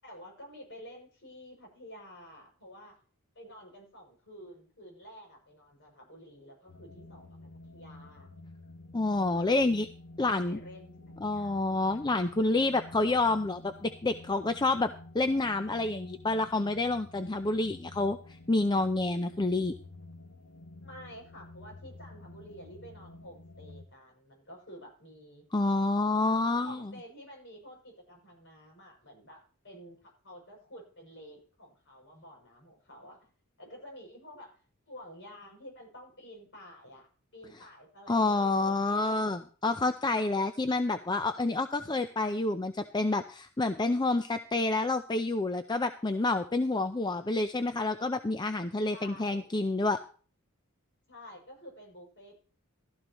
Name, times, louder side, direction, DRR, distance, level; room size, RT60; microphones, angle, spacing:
voice 1, 0.0-3.0 3.4-7.4 7.6-8.3 9.4-9.8 10.2-11.8 20.8-25.5 26.4-33.3 33.6-34.6 34.9-37.1 37.3-39.1 48.9-49.5 51.1-52.4, equal, 55° left, 1 dB, 7.0 m, -50 dB
sound 1, 6.7-23.9, left 2 dB, 80° left, 1.5 m, -50 dB
voice 2, 8.9-9.9 10.2-10.6 11.2-18.2 18.5-19.7 25.5-26.8 38.1-50.0, left 2 dB, 20° left, 9 dB, 0.5 m, -28 dB
15.5 x 13.0 x 3.0 m, 0.41 s
head